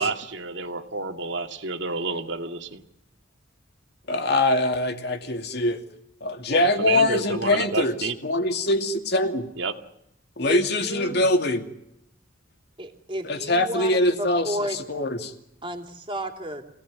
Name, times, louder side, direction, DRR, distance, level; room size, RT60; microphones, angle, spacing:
voice 1, 0.0-2.8 6.5-8.2 9.6-9.7, right 4 dB, 65° right, 6 dB, 2.3 m, -30 dB
voice 2, 4.1-5.8 6.2-9.5 10.4-11.6 13.2-15.3, left 1 dB, 60° left, 6 dB, 2.6 m, -23 dB
voice 3, 10.4-11.2 12.8-14.8 15.6-16.6, equal, 25° right, 6 dB, 3.0 m, -32 dB
26.0 x 17.5 x 9.5 m, 0.81 s
head